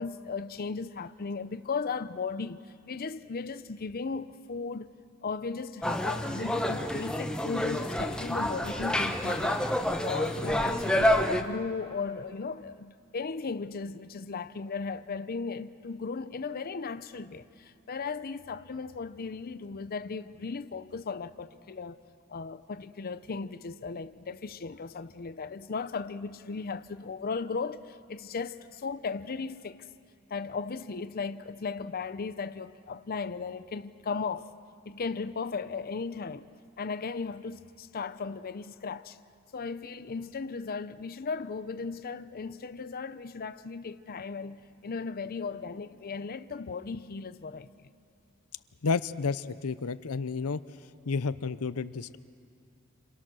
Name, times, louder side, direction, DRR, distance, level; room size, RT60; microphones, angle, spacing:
voice 1, 0.0-2.6 2.9-4.9 5.2-22.0 22.3-29.9 30.3-34.5 34.9-36.5 36.8-39.2 39.5-47.9, left 4 dB, 45° left, 0.6 m, -36 dB
sound 1, 5.8-11.4, left 1 dB, 5° left, 1.0 m, -28 dB
voice 2, 48.8-50.6 51.1-52.2, left 4 dB, 85° left, 0.7 m, -31 dB
29.0 x 26.5 x 6.2 m
head